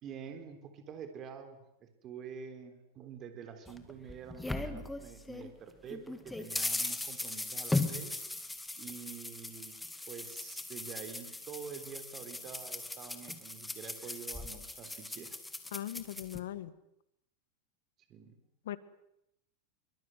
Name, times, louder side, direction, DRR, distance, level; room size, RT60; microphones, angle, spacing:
voice 1, 0.0-8.2 8.8-9.8 10.1-15.4 18.1-18.4, right 7 dB, 30° right, 8 dB, 3.7 m, -47 dB
sound 1, 3.7-5.5 5.9-16.4, left 2 dB, 5° left, 2.1 m, -38 dB
voice 2, 15.7-16.7 18.7-18.8, left 12 dB, 80° left, 15 dB, 1.9 m, -39 dB
25.5 x 24.0 x 9.3 m, 0.80 s
supercardioid pair, 155°, 0 cm